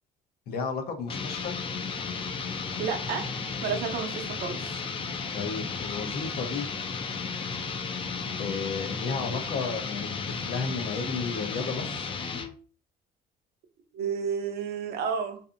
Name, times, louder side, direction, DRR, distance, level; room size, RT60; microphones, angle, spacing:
voice 1, 0.5-1.5 5.3-6.7 8.4-12.1, left 5 dB, 70° left, 0.7 m, -33 dB
sound 1, 1.1-12.5, left 5 dB, 30° left, 0.4 m, -34 dB
voice 2, 2.8-3.3 3.6-4.8 13.9-15.4, right 6 dB, 70° right, 0.6 m, -31 dB
2.6 x 2.5 x 2.4 m
cardioid pair, 110°, 17 cm